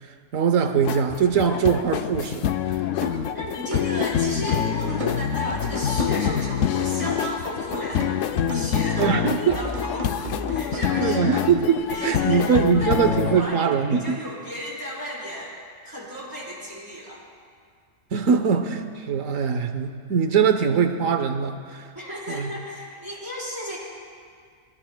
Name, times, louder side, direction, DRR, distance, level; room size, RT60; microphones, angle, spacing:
voice 1, 0.3-2.5 3.1-3.2 9.0-9.6 11.0-14.2 18.1-21.9 22.3-22.5, right 6 dB, 80° right, 8 dB, 1.3 m, -22 dB
sound 1, 0.8-13.4, left 9 dB, 75° left, 0.9 m, -26 dB
sound 2, 3.0-3.3 3.7-7.4 7.7-11.0, left 2 dB, 35° right, 1.3 m, -32 dB
voice 2, 3.3-8.1 8.5-9.2 9.4-11.3 11.9-15.5 15.8-17.2 21.9-23.8, equal, 15° right, -7 dB, 4.0 m, -34 dB
22.0 x 20.5 x 2.2 m, 2.1 s
omnidirectional pair, 1.4 m